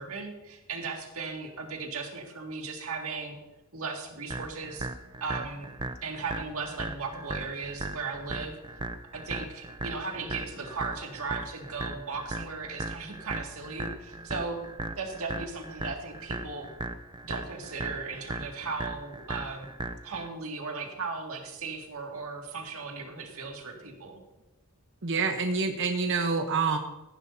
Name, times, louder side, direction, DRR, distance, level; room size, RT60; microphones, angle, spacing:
voice 1, 0.0-3.4 3.7-4.9 5.2-5.7 6.0-8.6 9.1-14.6 15.0-16.7 17.2-19.7 20.0-24.2, right 4 dB, 75° right, 2 dB, 2.0 m, -37 dB
sound 1, 4.3-20.3, right 2 dB, 20° right, 0.6 m, -38 dB
voice 2, 25.0-26.8, right 4 dB, 55° right, 4 dB, 0.9 m, -27 dB
15.0 x 11.0 x 2.7 m, 1.0 s
head